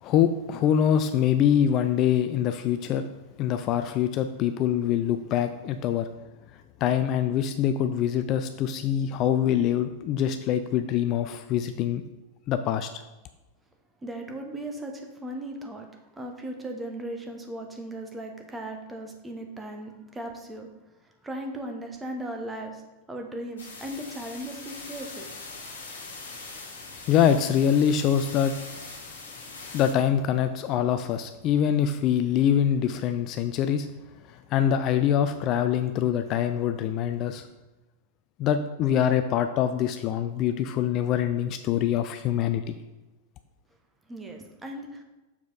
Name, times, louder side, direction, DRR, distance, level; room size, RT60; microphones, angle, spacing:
voice 1, 0.0-3.1 3.4-6.1 6.8-12.0 12.5-13.0 27.1-28.5 29.7-33.9 34.3-37.5 38.4-42.7, left 9 dB, 35° left, 9 dB, 0.3 m, -24 dB
voice 2, 14.0-15.9 16.2-20.7 21.0-22.8 23.1-25.2 44.1-45.0, right 1 dB, 10° right, 3 dB, 1.0 m, -37 dB
sound 1, 23.6-29.9, left 3 dB, 65° left, 1.5 m, -42 dB
7.0 x 4.6 x 4.1 m, 1.1 s
figure-of-eight pair, 90°, 0 cm